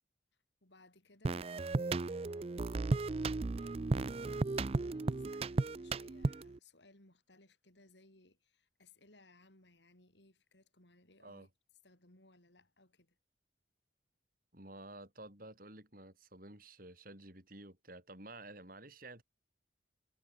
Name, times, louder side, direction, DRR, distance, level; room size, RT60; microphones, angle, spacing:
voice 1, 0.6-2.4 3.6-4.2 4.7-11.5 11.8-13.2, left 2 dB, 70° left, 5.3 m, -64 dB
sound 1, 1.2-6.6, right 3 dB, 30° right, 0.4 m, -35 dB
voice 2, 14.5-19.2, right 2 dB, 50° right, 6.0 m, -52 dB
head